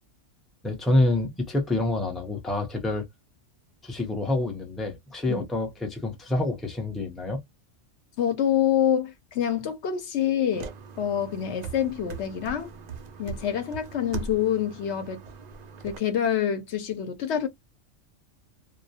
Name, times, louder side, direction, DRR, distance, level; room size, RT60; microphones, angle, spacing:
voice 1, 0.6-3.1 3.8-7.4, left 2 dB, ahead, 0.4 m, -27 dB
voice 2, 8.2-10.7 11.0-12.7 13.2-15.2 15.8-17.5, left 9 dB, 65° left, 0.9 m, -26 dB
sound 1, 10.5-16.0, right 5 dB, 70° right, 0.4 m, -40 dB
2.3 x 2.1 x 2.7 m
omnidirectional pair, 1.3 m